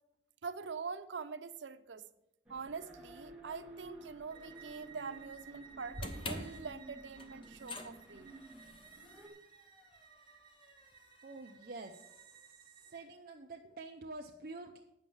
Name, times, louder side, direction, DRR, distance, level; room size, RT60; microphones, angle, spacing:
voice 1, 0.4-2.0 2.5-8.3, right 5 dB, 90° right, 0.7 m, -44 dB
sound 1, 2.5-9.3, right 1 dB, 5° right, 1.5 m, -53 dB
Bowed string instrument, 4.3-13.1, right 7 dB, 25° right, 1.3 m, -58 dB
sound 2, 5.9-12.2, left 2 dB, 30° left, 0.9 m, -48 dB
voice 2, 11.2-14.8, right 2 dB, 50° right, 0.6 m, -48 dB
9.2 x 6.3 x 7.1 m
head